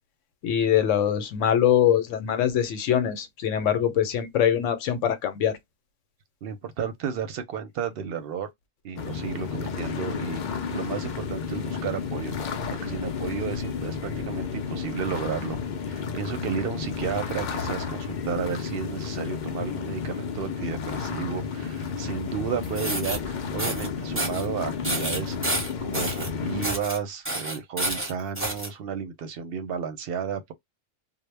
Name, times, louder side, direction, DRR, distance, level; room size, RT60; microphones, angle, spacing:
voice 1, 0.4-5.6, left 10 dB, 80° left, 1.0 m, -23 dB
voice 2, 6.4-8.5 8.8-10.4 10.7-12.3 12.7-15.6 15.9-25.4 25.8-30.5, right 7 dB, 60° right, 0.7 m, -32 dB
sound 1, 9.0-26.7, left 6 dB, 60° left, 0.5 m, -32 dB
sound 2, 22.6-23.2 23.6-23.9 24.2-24.5 24.8-26.3 26.6-27.0 27.2-28.7, right 1 dB, 15° right, 0.6 m, -29 dB
2.1 x 2.0 x 3.2 m
omnidirectional pair, 1.3 m